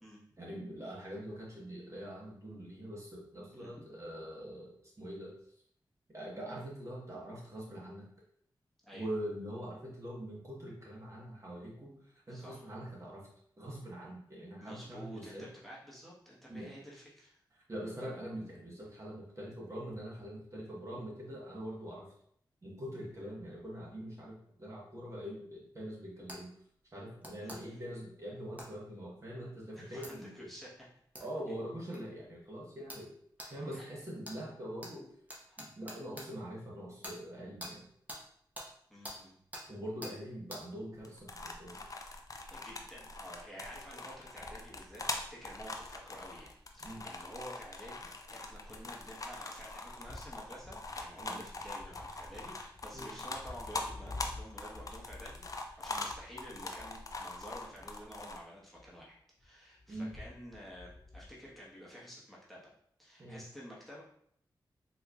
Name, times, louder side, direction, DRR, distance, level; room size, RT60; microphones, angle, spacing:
voice 1, 0.4-5.3 6.1-8.0 8.9-13.3 13.6-15.5 16.5-16.7 17.7-22.1 22.6-26.5 26.9-30.5 31.2-33.1 33.5-35.1 35.6-37.8 39.7-41.8 46.8-47.0 51.2-51.4 52.9-53.1 59.9-60.2 63.2-63.4, equal, 35° right, -4 dB, 1.3 m, -43 dB
voice 2, 12.3-12.7 14.6-17.4 27.4-27.8 29.8-30.9 33.4-33.9 35.5-35.6 38.9-39.4 42.5-62.7 63.0-64.0, equal, ahead, -5 dB, 1.2 m, -51 dB
sound 1, 26.3-26.4 27.2-27.6 28.6-28.7 30.0-30.1 31.1-31.3 31.9-32.0 32.9-33.0 33.4-33.5 34.2-34.4 34.8-34.9 35.3-36.3 37.0-37.2 37.6-37.7 38.1-38.2 38.5-38.7 39.0-39.2 39.5-39.6 40.0-40.1 40.5-40.6, equal, 20° right, 1.0 m, -45 dB
sound 2, 40.9-58.4, left 2 dB, 45° left, 0.5 m, -42 dB
sound 3, 44.3-46.1 46.4-47.0 47.4-47.5 49.9-58.4 58.7-61.7, left 2 dB, 60° left, 0.8 m, -52 dB
4.4 x 2.8 x 2.4 m, 0.66 s
cardioid pair, 55°, 9 cm